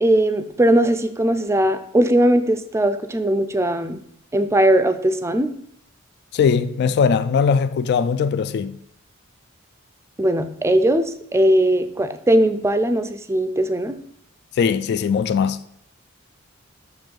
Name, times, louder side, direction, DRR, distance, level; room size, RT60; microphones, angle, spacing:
voice 1, 0.0-4.0 4.3-5.5 10.2-14.0, right 1 dB, 15° right, 0.4 m, -19 dB
voice 2, 6.3-8.8 14.6-15.6, left 6 dB, 55° left, 0.3 m, -20 dB
7.0 x 3.1 x 5.2 m
head